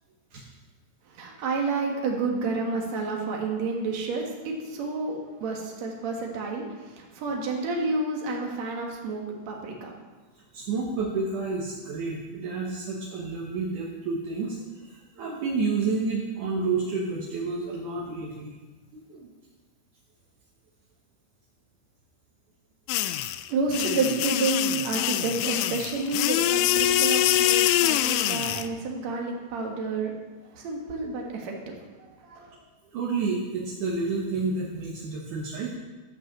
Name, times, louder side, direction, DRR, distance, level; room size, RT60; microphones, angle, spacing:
voice 1, 1.2-9.9 23.5-30.1 30.5-31.7 32.3-32.5, right 3 dB, 60° right, 0 dB, 1.9 m, -30 dB
voice 2, 10.5-18.5 18.9-19.3 32.9-35.7, right 4 dB, 75° right, -3 dB, 1.8 m, -30 dB
sound 1, 22.9-28.7, left 13 dB, 85° left, 2.7 m, -24 dB
12.5 x 5.9 x 7.5 m, 1.2 s
omnidirectional pair, 5.6 m